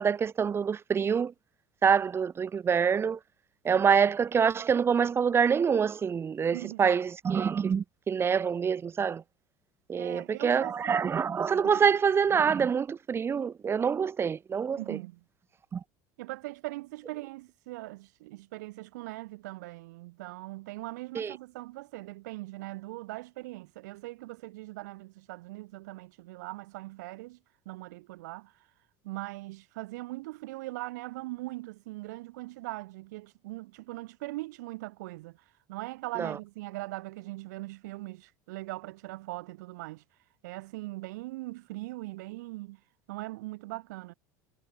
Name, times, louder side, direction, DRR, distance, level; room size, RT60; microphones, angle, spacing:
voice 1, 0.0-1.3 1.8-3.2 3.6-9.2 9.9-15.0 15.7-15.8 21.1-21.4 36.2-36.4, right 6 dB, 25° right, 1.0 m, -26 dB
voice 2, 6.5-6.9 10.0-11.1 11.6-11.8 14.8-15.2 16.2-27.4 27.6-28.5 29.0-40.0 40.4-42.8 43.1-44.1, right 20 dB, 90° right, 1.0 m, -40 dB
supercardioid pair, 110°, 9 cm